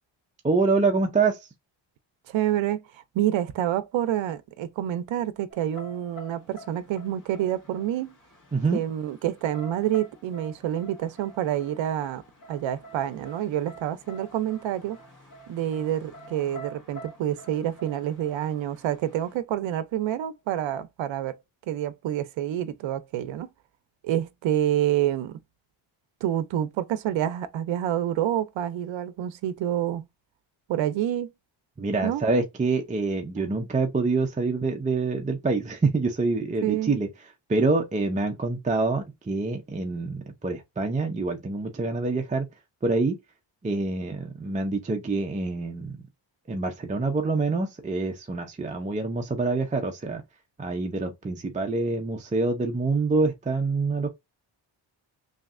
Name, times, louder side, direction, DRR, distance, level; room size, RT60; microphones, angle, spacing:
voice 1, 0.4-1.5 8.5-8.8 31.8-37.1 37.5-42.5 42.8-43.2 43.6-46.0 46.5-50.2 50.6-54.1, right 3 dB, 15° right, 0.5 m, -26 dB
voice 2, 2.3-8.2 8.7-12.2 12.5-15.0 15.5-21.4 21.7-23.5 24.0-25.4 26.2-30.1 30.7-31.3 32.0-32.2 36.6-36.9, right 11 dB, 75° right, 0.6 m, -28 dB
sound 1, 5.5-19.4, right 1 dB, 40° left, 1.3 m, -48 dB
3.1 x 2.8 x 2.4 m
wide cardioid pair, 130°, 46 cm